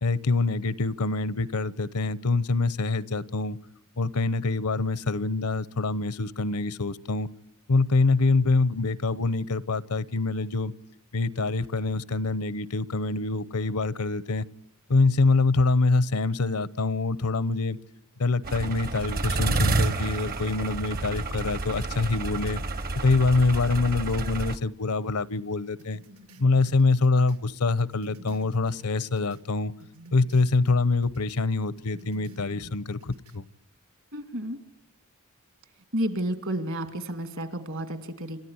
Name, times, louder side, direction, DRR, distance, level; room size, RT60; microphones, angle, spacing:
voice 1, 0.0-3.6 4.0-7.3 7.7-10.7 11.1-14.5 14.9-17.8 18.2-22.6 23.0-26.0 26.4-29.7 30.1-33.4, left 3 dB, 80° left, 18 dB, 0.8 m, -25 dB
sound 1, 18.4-24.6, right 2 dB, 45° right, 1.0 m, -29 dB
sound 2, 25.8-29.5 29.8-31.4 31.8-33.4, right 1 dB, 75° right, 2.0 m, -52 dB
voice 2, 34.1-34.6 35.9-38.4, right 1 dB, 60° right, 9 dB, 2.6 m, -31 dB
28.5 x 14.0 x 9.6 m, 0.83 s
head